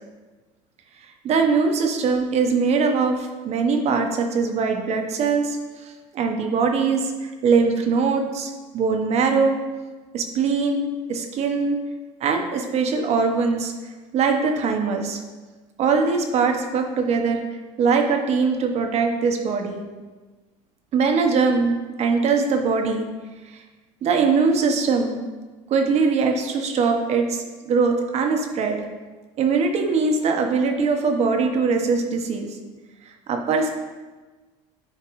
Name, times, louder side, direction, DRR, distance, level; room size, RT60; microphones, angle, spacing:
voice 1, 1.2-9.6 10.1-11.8 12.2-13.7 14.1-15.2 15.8-17.4 17.8-19.8 20.9-23.1 24.0-25.1 25.7-28.8 29.4-32.6 33.3-33.7, right 4 dB, 50° right, 4 dB, 1.0 m, -22 dB
9.7 x 4.5 x 3.1 m, 1.3 s
cardioid pair, 115°, 14 cm